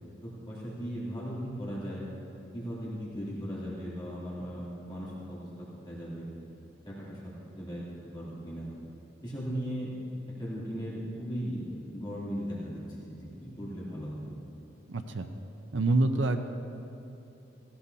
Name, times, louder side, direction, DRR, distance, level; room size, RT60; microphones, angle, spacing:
voice 1, 0.2-2.1 2.5-6.3 6.9-8.7 9.2-9.9 10.4-14.3, equal, 25° left, -8 dB, 2.7 m, -37 dB
voice 2, 14.9-15.3 15.7-16.4, right 2 dB, 75° right, 7 dB, 0.6 m, -26 dB
17.0 x 15.5 x 2.8 m, 2.9 s
head